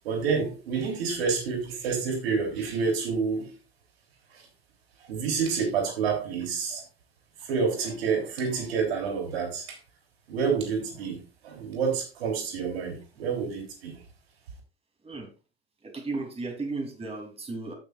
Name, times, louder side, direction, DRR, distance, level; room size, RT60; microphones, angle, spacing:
voice 1, 0.0-3.5 4.3-4.4 5.1-6.8 7.5-9.8 10.3-14.0, right 5 dB, 80° right, 3.4 m, -28 dB
voice 2, 15.8-17.7, right 3 dB, 20° right, 3.2 m, -34 dB
15.5 x 6.0 x 2.5 m
hypercardioid pair, 90°, 31 cm